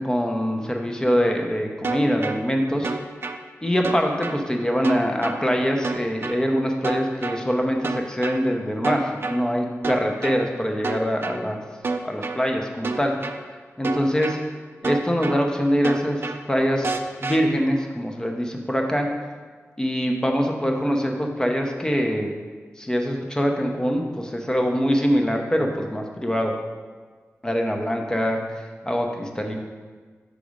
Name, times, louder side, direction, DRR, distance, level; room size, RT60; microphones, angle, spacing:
voice 1, 0.0-2.9 3.6-11.6 12.0-13.1 13.8-14.4 14.8-16.9 17.2-19.1 19.8-22.3 22.8-26.6 27.4-28.4 28.8-29.5, equal, 15° left, 2 dB, 0.7 m, -23 dB
sound 1, 1.8-2.4 2.8-3.4 3.8-4.4 4.8-5.4 5.8-6.4 6.8-7.4 7.8-8.4 8.8-9.4 9.8-10.4 10.8-11.4 11.8-12.4 12.8-13.4 13.8-14.4 14.8-15.4 15.8-16.4 16.8-17.4, right 4 dB, 50° right, 0.4 m, -28 dB
5.1 x 4.2 x 5.0 m, 1.5 s
wide cardioid pair, 100°, 5 cm